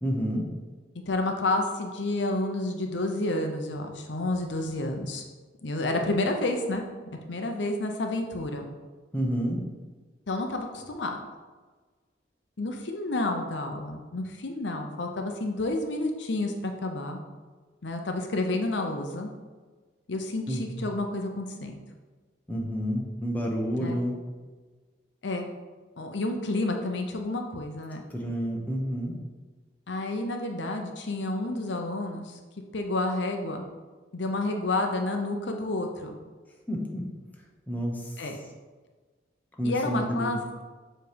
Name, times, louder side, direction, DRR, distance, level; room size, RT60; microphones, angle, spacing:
voice 1, 0.0-0.4 9.1-9.6 20.5-20.8 22.5-24.2 28.1-29.1 36.7-37.0 37.7-38.0 39.6-40.3, equal, 10° left, -1 dB, 1.0 m, -29 dB
voice 2, 1.1-5.2 5.6-8.7 10.3-11.2 12.6-17.2 17.8-19.3 20.1-21.7 23.8-24.0 25.2-25.5 26.0-28.0 29.9-32.4 32.7-33.6 34.1-36.2 38.2-38.4 39.6-40.4, left 2 dB, 70° left, 4 dB, 0.7 m, -30 dB
6.9 x 3.3 x 5.0 m, 1.4 s
head